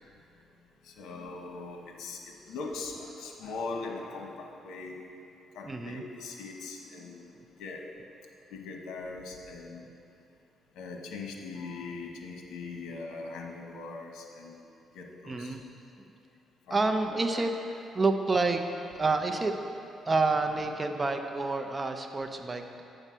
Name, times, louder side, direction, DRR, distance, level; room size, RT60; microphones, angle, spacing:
voice 1, 0.8-5.0 5.5-7.3 7.6-7.9 8.5-9.8 10.7-14.6 14.9-15.6 16.7-16.8 17.3-17.4, left 3 dB, 85° left, 1 dB, 1.1 m, -40 dB
voice 2, 5.6-6.0 7.3-7.4 9.8-9.9 15.3-15.6 16.0-16.1 16.7-17.5 17.9-18.6 18.9-19.6 20.1-22.8, right 3 dB, 25° right, 5 dB, 0.6 m, -28 dB
7.8 x 5.5 x 6.2 m, 2.6 s
cardioid pair, 100°, 0 cm